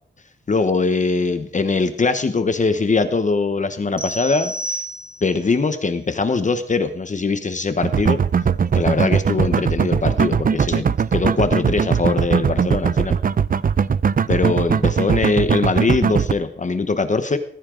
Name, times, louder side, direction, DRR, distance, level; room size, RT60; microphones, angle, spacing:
voice 1, 0.5-4.8 5.2-8.2 8.7-10.9 11.1-13.2 14.3-17.4, left 4 dB, 40° left, 9 dB, 1.0 m, -21 dB
sound 1, 4.0-5.5, equal, 20° right, 1.7 m, -30 dB
sound 2, 7.8-16.3, right 6 dB, 45° right, 0.5 m, -19 dB
19.5 x 15.0 x 3.8 m, 0.65 s
wide cardioid pair, 175°, 20 cm